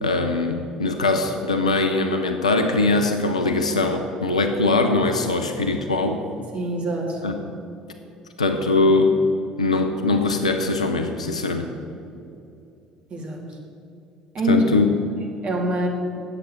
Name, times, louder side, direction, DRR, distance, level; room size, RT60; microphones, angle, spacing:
voice 1, 0.0-6.2 7.2-7.3 8.4-9.1 9.6-11.7 14.5-14.9, left 3 dB, 85° left, 6 dB, 0.6 m, -21 dB
voice 2, 6.5-7.2 13.1-13.4 14.3-14.6 15.4-15.9, equal, 40° right, -1 dB, 2.7 m, -24 dB
9.9 x 8.2 x 8.0 m, 2.6 s
figure-of-eight pair, 55°, 3 cm